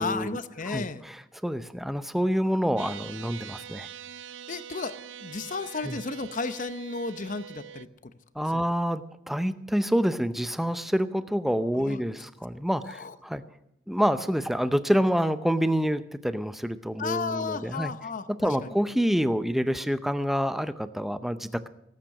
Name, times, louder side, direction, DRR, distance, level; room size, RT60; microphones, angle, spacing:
voice 1, 0.0-1.0 4.5-4.9 5.2-8.1 8.5-8.6 11.8-12.0 12.9-13.1 17.0-18.7, left 4 dB, 40° left, 11 dB, 0.7 m, -33 dB
voice 2, 0.7-3.9 5.8-6.0 8.4-13.4 13.9-17.9 18.4-21.7, equal, ahead, 11 dB, 0.6 m, -27 dB
sound 1, 2.8-7.9, right 9 dB, 65° right, 0.5 m, -43 dB
18.0 x 9.0 x 6.4 m, 0.81 s
head